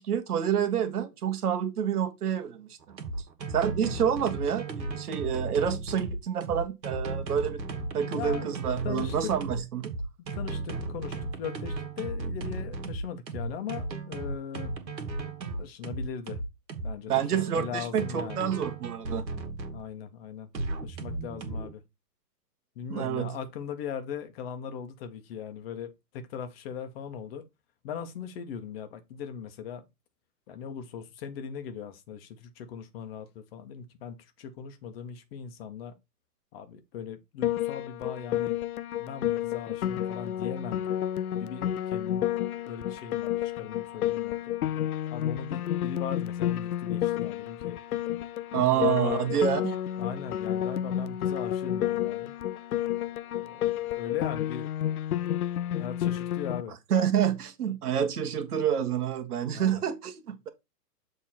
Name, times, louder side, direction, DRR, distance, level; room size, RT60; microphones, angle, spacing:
voice 1, 0.0-2.7 3.5-7.6 7.9-9.9 17.1-19.2 22.9-23.3 48.5-49.8 56.9-60.5, right 9 dB, 60° right, 1.5 m, -28 dB
sound 1, 2.8-19.8 20.5-21.7, right 3 dB, 80° right, 1.8 m, -35 dB
voice 2, 8.0-9.3 10.3-14.7 15.6-16.4 16.8-18.5 19.7-20.5 20.8-21.8 22.8-27.5 27.8-29.8 30.5-35.9 36.5-38.6 39.0-40.9 41.3-42.2 42.7-44.5 45.1-47.8 48.5-49.3 50.0-52.3 53.3-54.7 55.8-56.7 59.5-59.8, left 7 dB, 35° left, 1.1 m, -39 dB
Piano, 37.4-56.6, left 11 dB, 60° left, 0.6 m, -30 dB
7.1 x 3.7 x 4.4 m
hypercardioid pair, 125°, 50 cm